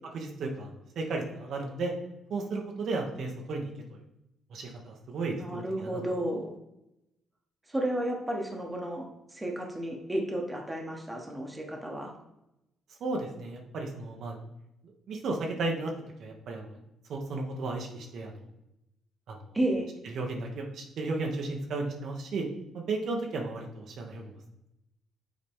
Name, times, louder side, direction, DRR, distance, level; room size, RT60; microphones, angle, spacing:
voice 1, 0.1-1.9 2.3-3.7 4.5-6.0 13.0-14.4 15.1-15.9 16.2-16.8 17.1-18.4 19.3-19.4 20.0-22.5 22.7-24.3, right 3 dB, 70° right, 1 dB, 1.1 m, -34 dB
voice 2, 5.4-6.6 7.7-9.0 9.3-12.1 19.5-19.9, right 1 dB, 15° right, 1 dB, 1.3 m, -32 dB
7.2 x 4.1 x 3.6 m, 0.86 s
cardioid pair, 90°, 0 cm